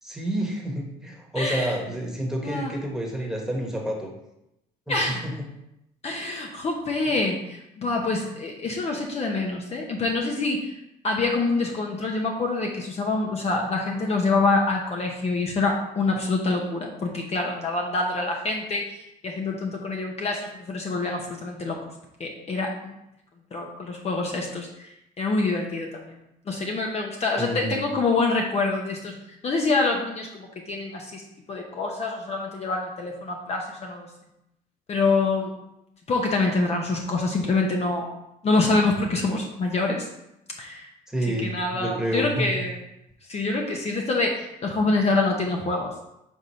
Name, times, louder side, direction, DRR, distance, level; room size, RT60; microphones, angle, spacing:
voice 1, 0.0-4.1 4.9-5.3 7.1-7.2 27.4-27.9 41.1-42.7, right 1 dB, 5° right, -1 dB, 1.4 m, -29 dB
voice 2, 1.3-1.8 2.4-2.7 4.9-5.2 6.0-10.7 11.0-19.0 19.2-21.8 22.2-22.9 23.5-24.9 25.2-26.2 26.5-29.2 29.4-31.2 31.5-34.1 34.9-35.5 36.1-38.1 38.4-40.1 40.6-40.9 41.4-42.8 43.3-45.9, left 3 dB, 40° left, 1 dB, 0.9 m, -26 dB
4.7 x 3.9 x 5.6 m, 0.86 s
cardioid pair, 110°, 17 cm